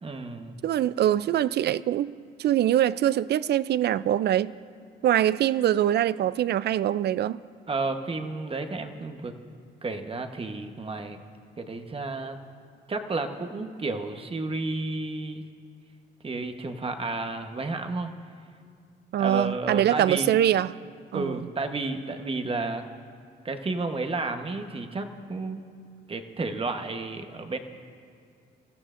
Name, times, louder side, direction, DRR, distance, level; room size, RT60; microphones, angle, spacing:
voice 1, 0.0-0.6 7.7-9.4 9.8-11.2 11.6-12.4 12.9-15.4 16.2-18.1 19.2-20.3 21.1-22.8 23.4-25.6 26.1-27.6, right 3 dB, 30° right, 6 dB, 1.0 m, -32 dB
voice 2, 0.6-2.1 2.4-4.5 5.0-7.4 19.1-20.7 21.1-21.4, right 11 dB, 55° right, 18 dB, 0.4 m, -23 dB
25.5 x 14.0 x 2.5 m, 2.2 s
cardioid pair, 90°, 20 cm